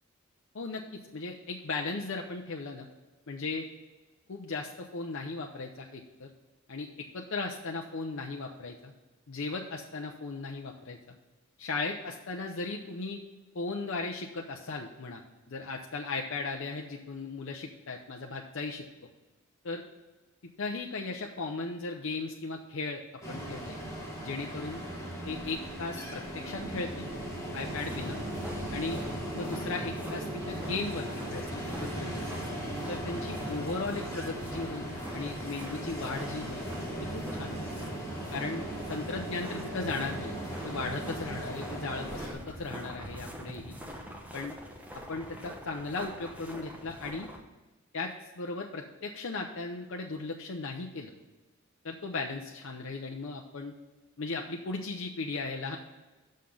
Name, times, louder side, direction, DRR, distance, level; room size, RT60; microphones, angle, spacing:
voice 1, 0.5-2.9 3.3-3.7 4.3-6.3 6.7-8.9 9.3-11.0 11.6-13.2 13.5-15.2 15.5-18.8 19.6-19.8 20.6-23.0 23.3-23.8 24.2-24.8 25.3-27.1 27.5-28.2 28.7-29.0 29.3-32.3 32.9-36.6 37.0-37.7 38.3-40.4 40.6-43.7 44.3-44.5 45.1-47.3 47.9-51.1 51.8-53.7 54.2-55.8, left 3 dB, 65° left, 1 dB, 0.7 m, -37 dB
Ocean, 23.2-42.3, right 1 dB, 15° left, 2.6 m, -38 dB
sound 1, 24.6-39.7 40.8-41.5, equal, 30° right, 0.7 m, -47 dB
sound 2, 27.6-47.4, equal, 10° right, 1.0 m, -44 dB
6.4 x 5.7 x 7.1 m, 1.2 s
head